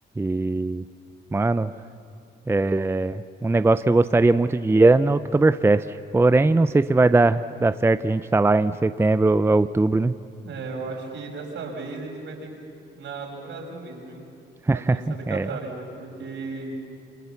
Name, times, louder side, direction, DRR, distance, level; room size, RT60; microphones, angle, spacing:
voice 1, 0.2-0.8 1.3-1.7 2.5-10.1 14.7-15.5, right 2 dB, 10° right, 12 dB, 0.5 m, -20 dB
voice 2, 10.4-12.5 12.9-14.2 14.7-16.8, right 3 dB, 70° right, 0 dB, 6.0 m, -35 dB
28.5 x 25.5 x 7.1 m, 2.4 s
cardioid pair, 90°, 20 cm